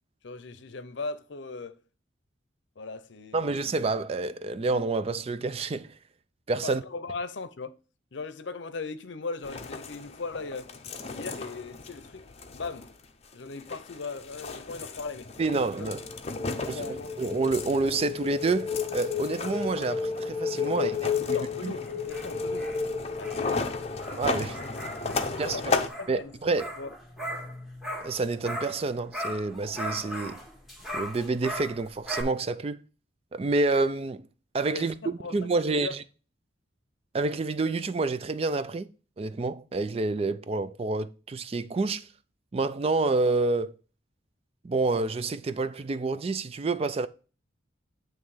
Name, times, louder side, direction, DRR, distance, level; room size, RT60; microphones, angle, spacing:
voice 1, 0.2-1.8 2.8-3.5 6.6-7.7 8.1-10.7 11.0-12.9 13.3-15.3 15.8-15.9 16.4-17.1 20.7-22.7 23.2-23.7 25.1-26.9 34.7-35.4 35.6-35.9, left 4 dB, 70° left, 0.7 m, -39 dB
voice 2, 3.3-5.9 6.5-6.8 15.4-16.0 16.7-21.0 21.3-21.7 24.2-24.6 25.4-25.6 26.1-26.7 28.0-30.4 30.9-32.8 33.3-34.2 34.5-36.0 37.1-38.9 39.2-42.1 42.5-43.8 44.6-47.1, right 3 dB, 30° right, 0.3 m, -28 dB
sound 1, 9.4-25.9, left 3 dB, 35° left, 0.7 m, -36 dB
sound 2, 15.9-24.6, left 6 dB, 15° left, 1.2 m, -33 dB
sound 3, 21.8-28.9 29.1-32.2, equal, ahead, 1.3 m, -39 dB
9.1 x 3.1 x 4.8 m
head